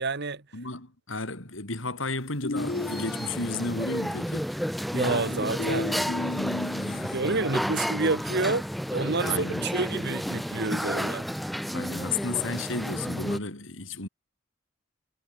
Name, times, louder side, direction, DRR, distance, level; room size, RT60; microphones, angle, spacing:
voice 1, 0.0-0.4 4.9-6.0 7.1-8.6 8.9-11.3, right 3 dB, 55° right, 1.7 m, -29 dB
voice 2, 0.5-4.5 6.8-7.4 9.2-9.7 11.7-14.1, left 3 dB, 70° left, 4.7 m, -33 dB
sound 1, 2.4-3.7 4.9-7.1, left 2 dB, 50° left, 0.9 m, -33 dB
sound 2, 2.5-13.4, equal, ahead, 1.6 m, -31 dB
head